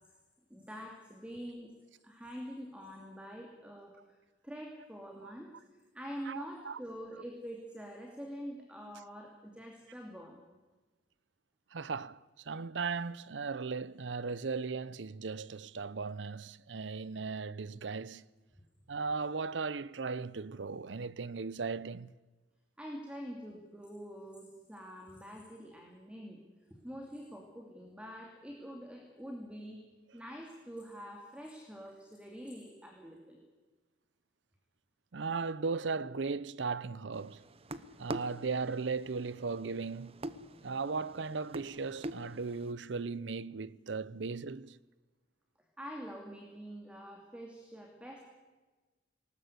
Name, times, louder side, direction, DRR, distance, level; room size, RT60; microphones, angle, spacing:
voice 1, 0.5-1.7 2.0-4.2 4.4-5.5 5.9-10.4 22.8-26.4 26.7-29.8 30.1-33.4 45.8-48.2, equal, 5° right, 2.5 m, -46 dB
voice 2, 6.3-6.8 11.7-18.2 18.9-22.1 35.1-37.4 38.0-40.2 40.6-44.8, right 4 dB, 75° right, 0.7 m, -37 dB
sound 1, 37.1-42.7, right 1 dB, 35° right, 0.9 m, -45 dB
19.5 x 19.5 x 8.1 m
head